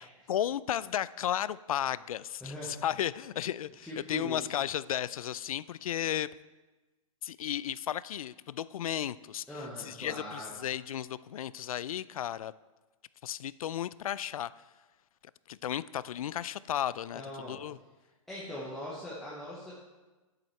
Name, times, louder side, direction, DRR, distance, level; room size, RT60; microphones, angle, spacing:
voice 1, 0.3-6.3 7.2-9.4 9.9-12.5 13.2-14.5 15.5-17.2 17.5-17.8, left 11 dB, 75° left, 18 dB, 0.4 m, -34 dB
voice 2, 2.4-2.8 3.8-4.5 9.5-10.5 17.1-17.6 18.3-19.7, equal, ahead, -7 dB, 0.9 m, -41 dB
11.0 x 7.8 x 4.4 m, 1.2 s
hypercardioid pair, 170°, 18 cm